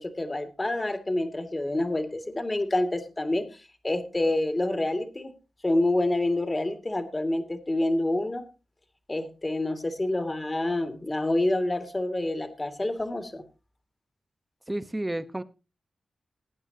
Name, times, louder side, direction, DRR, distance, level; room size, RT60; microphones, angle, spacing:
voice 1, 0.0-3.5 3.8-5.3 5.6-8.5 9.1-13.4, left 1 dB, 25° left, 7 dB, 2.1 m, -27 dB
voice 2, 14.7-15.4, right 1 dB, 15° right, 11 dB, 1.0 m, -31 dB
19.0 x 9.0 x 2.8 m, 0.28 s
cardioid pair, 60°, 0 cm